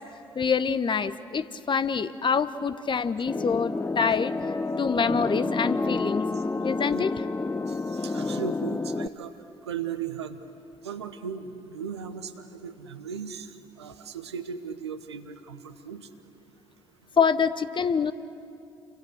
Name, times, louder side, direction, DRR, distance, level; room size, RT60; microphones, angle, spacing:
voice 1, 0.4-4.3 4.8-6.3 6.6-7.1 17.2-18.1, left 6 dB, 35° left, 13 dB, 1.0 m, -25 dB
sound 1, 3.3-9.1, left 3 dB, 15° left, 0.7 m, -29 dB
voice 2, 7.7-9.3 9.7-10.4 10.8-13.5 13.8-16.1, right 7 dB, 85° right, 8 dB, 1.0 m, -37 dB
29.0 x 25.5 x 6.6 m, 2.7 s
figure-of-eight pair, 40°, 14 cm